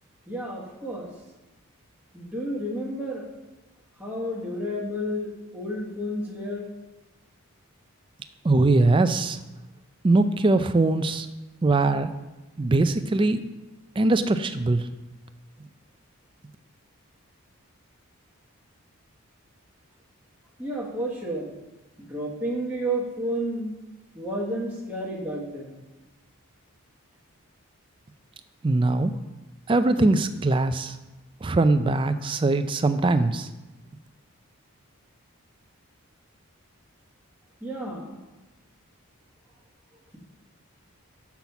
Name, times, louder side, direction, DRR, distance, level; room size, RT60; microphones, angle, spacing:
voice 1, 0.3-1.1 2.1-3.2 4.0-6.7 20.6-21.5 22.0-23.7 24.1-25.8 37.6-38.1, equal, 5° right, -4 dB, 1.2 m, -31 dB
voice 2, 8.4-9.4 10.0-11.3 11.6-12.1 12.6-13.4 14.0-14.8 28.6-29.1 29.7-31.0 31.4-33.5, right 2 dB, 20° right, 10 dB, 0.3 m, -21 dB
7.0 x 6.0 x 5.8 m, 1.1 s
head